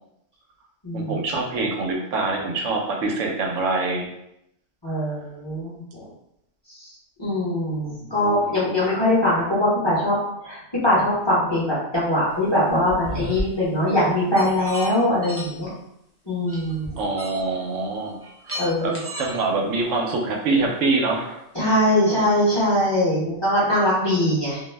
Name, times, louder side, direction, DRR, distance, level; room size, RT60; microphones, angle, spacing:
voice 1, 0.9-4.1 4.9-5.1 7.9-8.8 17.0-18.2 18.4-21.4, right 3 dB, 80° right, 1 dB, 0.9 m, -25 dB
voice 2, 4.8-6.1 6.7-6.9 7.2-10.1 10.4-15.7 16.3-17.0 18.6-19.0 21.5-24.6, left 1 dB, 25° left, -8 dB, 0.7 m, -22 dB
sound 1, 12.4-13.4 14.4-14.9 15.2-15.5 16.5-17.6 18.1-19.4, equal, 25° right, 0.3 m, -33 dB
2.4 x 2.0 x 3.2 m, 0.82 s
omnidirectional pair, 1.3 m